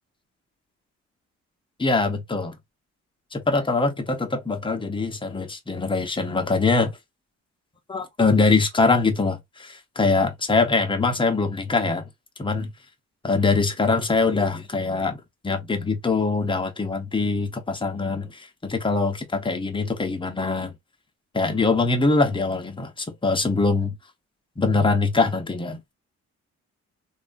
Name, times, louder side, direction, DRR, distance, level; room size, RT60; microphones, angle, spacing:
voice 1, 1.8-2.6 3.3-7.0 7.9-12.1 12.4-12.7 13.2-20.7 21.3-24.0 24.6-25.8, left 3 dB, 15° left, 0.7 m, -23 dB
3.0 x 2.3 x 2.5 m
cardioid pair, 90°, 30 cm